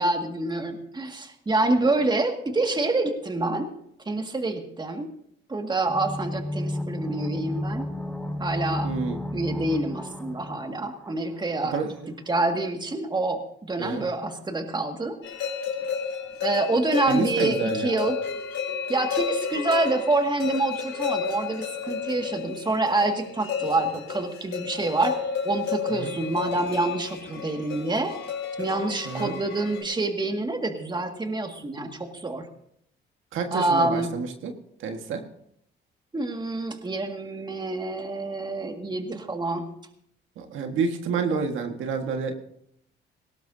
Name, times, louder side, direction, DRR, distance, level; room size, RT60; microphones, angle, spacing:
voice 1, 0.0-3.7 4.1-5.1 5.5-7.9 8.4-8.9 9.3-11.8 12.3-15.2 16.4-18.2 18.9-25.2 25.4-28.1 28.6-32.5 33.5-34.1 36.1-39.7, right 2 dB, 20° right, 4 dB, 2.0 m, -27 dB
sound 1, 5.8-11.5 11.8-11.9, left 1 dB, 5° left, 1.8 m, -32 dB
voice 2, 8.8-9.2 11.7-12.1 13.8-14.1 17.1-18.0 25.9-26.1 29.0-29.3 33.3-34.5 34.8-35.2 40.4-42.3, right 5 dB, 80° right, 4 dB, 1.7 m, -29 dB
sound 2, 15.2-29.8, left 6 dB, 70° left, 3.5 m, -32 dB
18.5 x 17.0 x 2.8 m, 0.72 s
cardioid pair, 90°, 20 cm